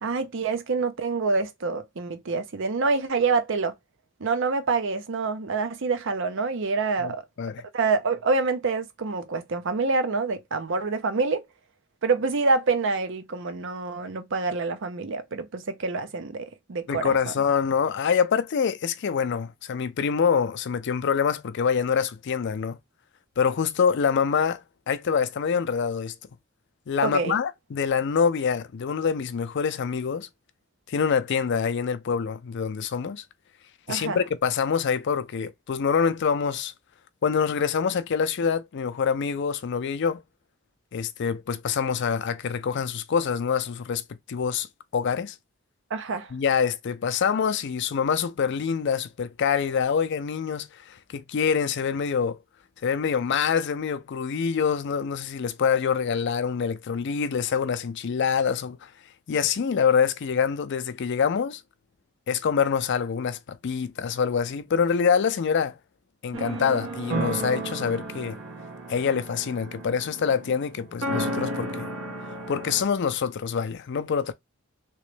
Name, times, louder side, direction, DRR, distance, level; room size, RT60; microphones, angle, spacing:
voice 1, 0.0-3.7 4.2-7.2 7.7-11.4 12.0-17.1 27.0-27.4 33.9-34.2 45.9-46.3, right 4 dB, 65° right, 0.6 m, -26 dB
voice 2, 7.0-7.6 16.9-22.8 23.4-24.6 24.9-26.1 26.9-30.3 30.9-33.2 33.9-36.7 37.2-40.2 40.9-44.0 44.3-44.7 44.9-45.4 46.3-52.4 52.8-58.9 59.3-61.6 62.3-65.8 66.2-68.4 68.9-71.9 72.5-74.3, left 6 dB, 60° left, 0.4 m, -25 dB
sound 1, 66.3-72.8, right 1 dB, 80° right, 1.1 m, -33 dB
3.1 x 3.0 x 3.2 m
head